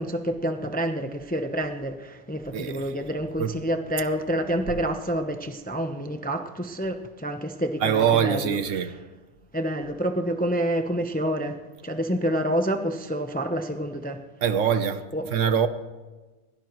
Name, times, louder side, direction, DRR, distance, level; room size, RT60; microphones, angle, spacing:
voice 1, 0.0-8.6 9.5-14.2 15.1-15.3, right 1 dB, 10° left, 0.6 m, -28 dB
voice 2, 2.5-2.9 3.4-3.5 7.8-8.9 14.4-15.7, right 8 dB, 65° right, 1.1 m, -24 dB
22.0 x 16.5 x 3.1 m
omnidirectional pair, 1.5 m